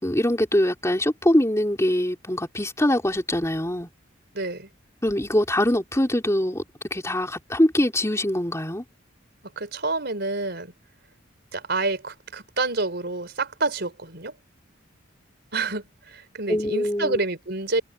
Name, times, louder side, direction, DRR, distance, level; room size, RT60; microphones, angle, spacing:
voice 1, 0.0-3.9 5.0-6.6 6.9-8.8 16.5-17.2, left 1 dB, 15° left, 3.6 m, -23 dB
voice 2, 4.3-4.7 9.6-10.7 11.5-14.3 15.5-17.8, right 3 dB, 55° right, 4.4 m, -28 dB
head